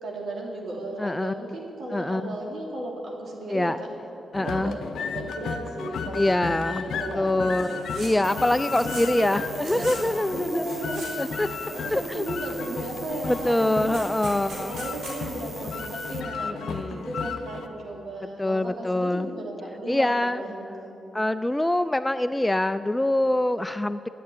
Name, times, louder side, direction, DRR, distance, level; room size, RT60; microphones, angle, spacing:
voice 1, 0.0-3.9 4.4-14.0 14.5-21.0, right 1 dB, 65° right, -1 dB, 2.7 m, -35 dB
voice 2, 1.0-1.3 1.9-2.4 3.5-3.8 4.3-4.8 6.1-6.8 7.1-7.7 8.0-10.8 11.2-11.5 11.9-12.3 13.3-14.7 16.4-17.0 18.4-19.3 19.9-20.4 21.1-24.1, left 1 dB, 10° left, 12 dB, 0.3 m, -24 dB
sound 1, 4.3-17.7, left 6 dB, 80° left, 0.7 m, -35 dB
sound 2, 7.5-8.1 8.4-9.2 9.5-10.0 10.5-11.4 11.7-12.3 12.7-12.9 13.2-15.2, right 2 dB, 85° right, 3.4 m, -41 dB
sound 3, 8.2-16.2, right 3 dB, 40° right, 0.9 m, -42 dB
9.3 x 9.3 x 9.9 m, 3.0 s
cardioid pair, 85°, 0 cm